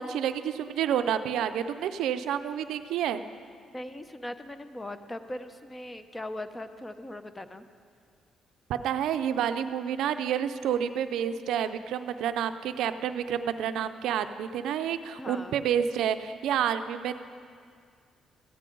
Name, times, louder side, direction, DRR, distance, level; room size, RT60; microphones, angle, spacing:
voice 1, 0.0-3.2 8.7-17.2, right 9 dB, 85° right, 10 dB, 0.4 m, -29 dB
voice 2, 3.7-7.6 15.2-15.6, left 1 dB, 20° left, 10 dB, 0.6 m, -39 dB
15.0 x 9.9 x 3.8 m, 2.2 s
cardioid pair, 90°, 0 cm